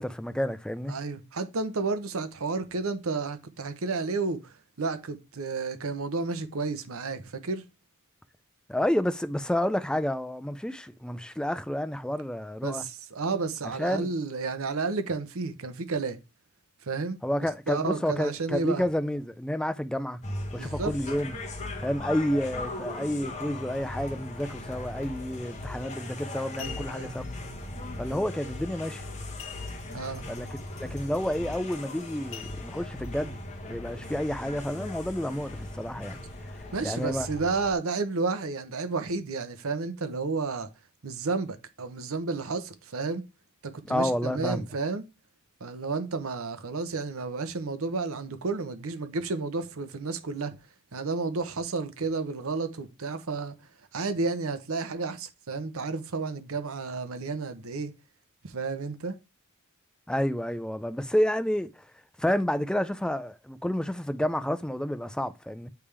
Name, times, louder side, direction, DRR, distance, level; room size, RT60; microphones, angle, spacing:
voice 1, 0.0-1.0 8.7-12.8 13.8-14.1 17.2-20.2 20.5-21.3 21.8-27.2 28.0-29.0 30.3-33.4 33.7-36.2 36.8-37.3 43.9-44.6 60.1-61.7 62.2-65.7, left 1 dB, 5° left, 0.3 m, -30 dB
voice 2, 0.9-7.6 12.6-16.2 16.8-17.2 17.7-18.8 20.5-20.9 26.6-27.2 29.9-30.2 36.7-40.7 41.0-43.2 43.7-45.0 45.6-50.6 50.9-53.5 53.9-57.9 58.4-59.2, right 4 dB, 65° right, 0.8 m, -31 dB
sound 1, 20.2-37.7, left 2 dB, 30° left, 1.0 m, -38 dB
sound 2, 25.9-26.0 26.4-27.2 29.4-30.1 30.4-30.5 31.0-31.2 32.3-33.1 33.7-33.8, left 10 dB, 65° left, 0.6 m, -44 dB
8.4 x 3.5 x 3.3 m
head